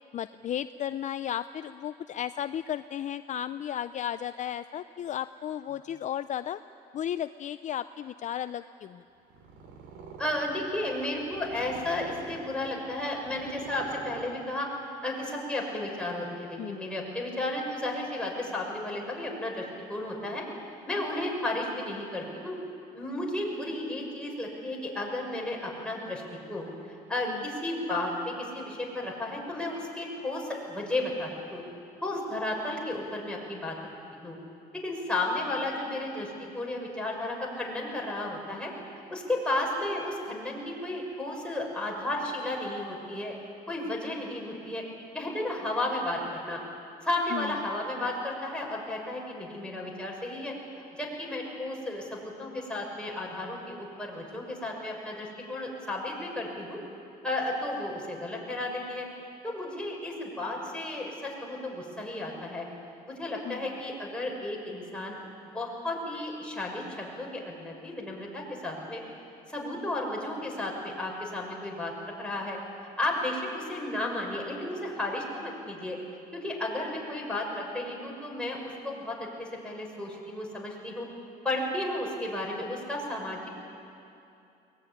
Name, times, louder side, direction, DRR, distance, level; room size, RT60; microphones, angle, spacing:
voice 1, 0.1-6.6 6.9-9.0 16.6-16.9 27.3-27.4 47.3-47.6 63.4-63.7, left 10 dB, 45° left, 12 dB, 0.5 m, -34 dB
Purr, 9.2-14.9, right 5 dB, 90° right, 2.8 m, -47 dB
voice 2, 10.2-14.7 15.0-20.4 20.9-22.6 22.9-26.2 26.5-31.6 32.0-33.8 34.1-34.4 34.7-38.7 39.1-43.3 43.7-44.8 45.1-46.6 47.0-56.8 57.2-59.1 59.4-62.7 63.1-65.2 65.5-69.0 69.5-72.6 73.0-76.0 76.3-81.1 81.4-83.5, left 1 dB, 5° left, -2 dB, 6.3 m, -33 dB
22.5 x 19.5 x 10.0 m, 2.7 s
cardioid pair, 110°, 17 cm